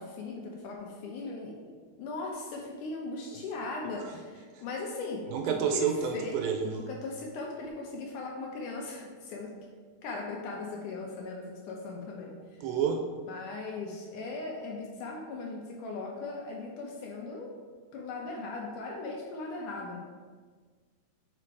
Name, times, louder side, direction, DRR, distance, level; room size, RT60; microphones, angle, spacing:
voice 1, 0.0-5.9 6.1-6.4 6.6-9.5 10.0-12.4 13.3-17.5 17.9-20.0, left 3 dB, 75° left, -1 dB, 1.9 m, -38 dB
voice 2, 5.3-6.8 12.6-13.0, right 7 dB, 80° right, 4 dB, 2.2 m, -29 dB
5.9 x 5.1 x 4.6 m, 1.5 s
omnidirectional pair, 4.3 m